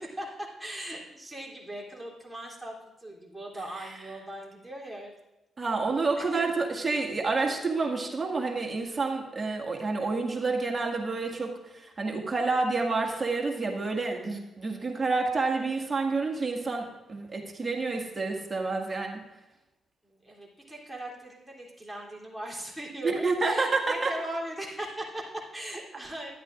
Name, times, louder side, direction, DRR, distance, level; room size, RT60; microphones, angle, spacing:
voice 1, 0.0-5.1 6.2-6.5 20.0-26.3, right 1 dB, 5° right, -4 dB, 3.1 m, -39 dB
voice 2, 5.6-19.2 23.0-24.1, right 3 dB, 30° right, 1 dB, 1.9 m, -29 dB
12.5 x 10.5 x 2.5 m, 1.0 s
hypercardioid pair, 40°, 0 cm